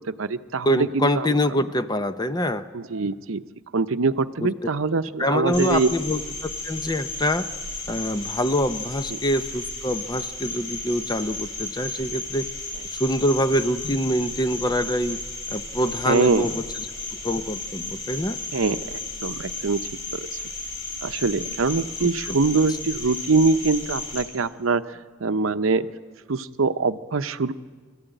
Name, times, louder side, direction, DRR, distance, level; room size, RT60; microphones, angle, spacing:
voice 1, 0.1-1.4 2.7-3.4 3.7-5.9 9.1-9.2 16.0-16.5 18.5-19.8 20.1-20.4 21.0-25.9 26.3-27.5, right 4 dB, 80° right, 11 dB, 0.7 m, -24 dB
voice 2, 0.6-2.6 4.4-4.5 5.2-7.5 7.9-12.5 12.8-15.2 15.5-16.6 17.2-18.4 22.3-22.4, equal, 20° left, 11 dB, 0.6 m, -25 dB
Cricket, 5.5-24.2, left 2 dB, 65° left, 6.2 m, -34 dB
24.5 x 14.0 x 9.1 m, 1.5 s
head